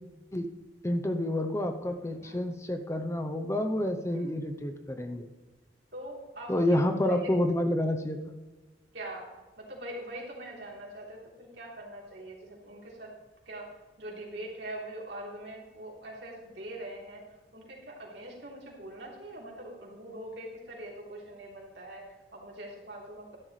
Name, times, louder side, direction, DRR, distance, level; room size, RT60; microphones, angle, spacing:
voice 1, 0.8-5.3 6.5-8.2, left 1 dB, 15° left, 6 dB, 0.6 m, -29 dB
voice 2, 5.9-7.3 8.9-9.3 9.6-13.1 13.4-17.2 17.5-23.4, right 1 dB, 70° right, -2 dB, 3.4 m, -43 dB
13.0 x 11.5 x 3.2 m, 1.2 s
head